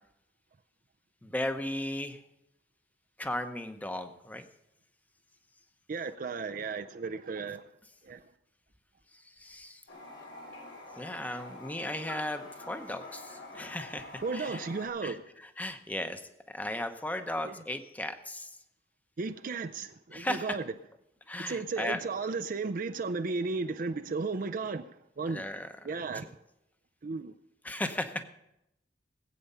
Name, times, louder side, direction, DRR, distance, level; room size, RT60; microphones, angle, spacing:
voice 1, 1.2-2.2 3.2-4.4 9.1-9.8 11.0-14.7 15.0-18.6 20.1-20.6 21.3-22.0 25.3-25.7 26.1-26.3 27.6-28.3, left 1 dB, 10° left, 0.9 m, -36 dB
voice 2, 5.9-7.6 8.1-8.2 14.2-15.2 17.5-17.6 19.2-20.6 21.5-24.9 25.2-25.4 25.8-26.3 27.0-27.3, right 4 dB, 50° right, 0.5 m, -34 dB
Toilet flush, 9.9-14.9, left 2 dB, 85° left, 3.8 m, -46 dB
19.5 x 8.5 x 5.5 m
head